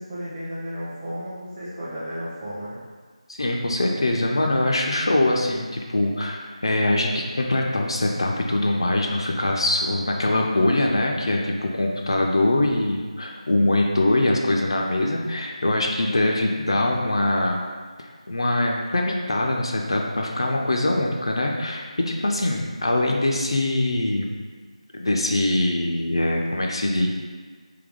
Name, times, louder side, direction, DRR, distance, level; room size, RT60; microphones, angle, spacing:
voice 1, 0.0-2.8, equal, 15° right, -9 dB, 0.6 m, -33 dB
voice 2, 3.3-17.6 18.0-24.3 24.9-27.1, left 1 dB, 45° left, 0 dB, 0.4 m, -23 dB
3.8 x 2.8 x 3.5 m, 1.5 s
figure-of-eight pair, 165°, 4 cm